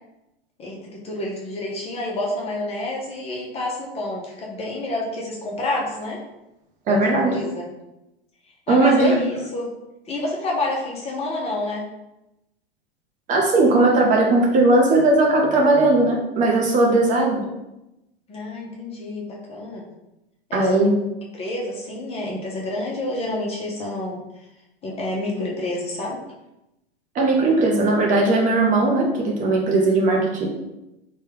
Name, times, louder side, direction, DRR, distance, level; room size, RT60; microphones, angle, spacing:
voice 1, 0.6-6.2 6.9-7.7 8.7-9.7 10.1-11.9 18.3-19.8 20.5-20.8 21.3-24.2 24.8-26.2, left 2 dB, 20° left, -2 dB, 0.5 m, -28 dB
voice 2, 6.9-7.4 8.7-9.1 13.3-17.4 20.5-21.0 27.1-30.5, right 2 dB, 25° right, 0 dB, 0.5 m, -18 dB
3.2 x 2.2 x 3.3 m, 0.93 s
hypercardioid pair, 110°, 30 cm